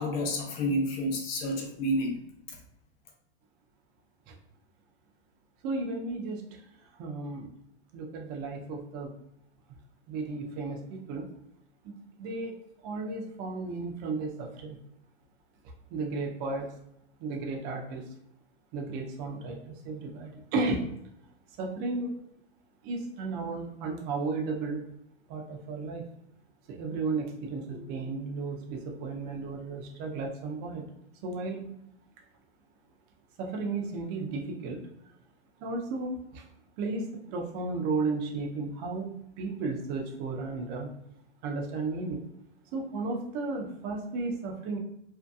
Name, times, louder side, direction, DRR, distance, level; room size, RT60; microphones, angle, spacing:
voice 1, 0.0-2.2, equal, 55° left, 1 dB, 0.8 m, -29 dB
voice 2, 5.6-6.4 7.0-7.5 7.9-9.1 10.1-11.3 11.8-12.6 12.8-14.8 15.9-16.7 17.2-18.0 18.7-20.9 21.6-22.1 22.8-24.8 25.3-26.0 26.7-30.9 31.2-31.7 33.4-34.8 35.6-36.4 36.8-40.9 41.4-42.2 42.7-44.8, right 3 dB, 30° right, 1 dB, 0.4 m, -34 dB
2.6 x 2.4 x 2.3 m, 0.78 s
supercardioid pair, 140°, 34 cm